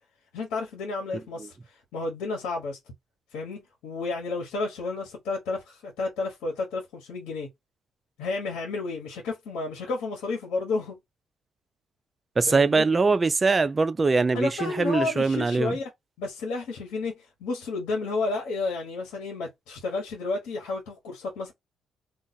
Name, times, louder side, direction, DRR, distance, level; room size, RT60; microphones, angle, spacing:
voice 1, 0.3-2.8 3.3-7.5 8.2-11.0 12.5-12.8 14.3-15.9 16.2-21.5, left 3 dB, 90° left, 1.1 m, -31 dB
voice 2, 12.4-15.8, right 4 dB, 30° right, 0.3 m, -22 dB
2.4 x 2.3 x 3.9 m
cardioid pair, 90°, 0 cm